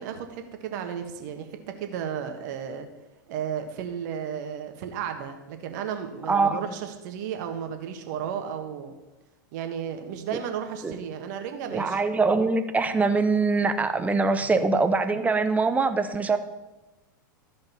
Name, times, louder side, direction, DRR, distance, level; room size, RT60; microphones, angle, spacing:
voice 1, 0.0-2.9 3.3-8.9 9.5-12.0 14.3-14.5, right 8 dB, 60° right, 6 dB, 1.5 m, -34 dB
voice 2, 6.3-6.6 10.8-11.0 11.7-16.4, right 3 dB, 15° right, 9 dB, 0.8 m, -23 dB
13.5 x 5.3 x 5.7 m, 1.1 s
hypercardioid pair, 95°, 11 cm